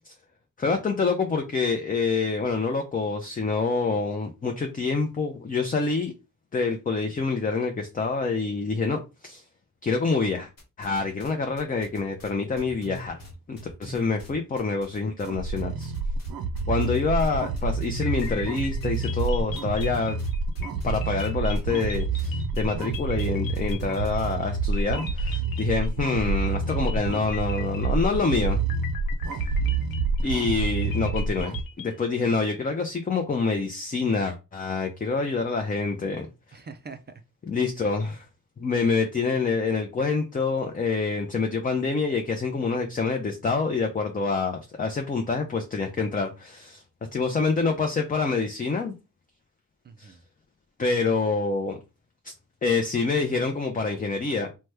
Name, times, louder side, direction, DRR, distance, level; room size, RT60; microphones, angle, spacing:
voice 1, 0.6-6.1 6.5-9.4 9.8-10.5 10.8-13.2 13.5-15.9 16.7-20.2 20.8-28.6 30.2-36.3 37.5-38.2 38.6-46.8 47.1-48.9 50.0-50.1 50.8-51.8 52.2-52.3 52.6-54.5, left 4 dB, 25° left, 0.5 m, -26 dB
sound 1, 10.6-11.3 11.6-15.3 15.6-16.3 16.6-24.4, right 1 dB, 45° left, 1.1 m, -42 dB
sound 2, 15.2-31.6, right 3 dB, 90° right, 0.5 m, -28 dB
sound 3, 18.0-24.4 24.7-26.1 26.4-28.3 28.7-32.1, left 7 dB, 75° left, 0.6 m, -41 dB
voice 2, 29.4-30.6 36.5-37.0 49.8-50.2, right 4 dB, 30° right, 0.4 m, -46 dB
3.0 x 2.1 x 3.3 m
cardioid pair, 75°, 35 cm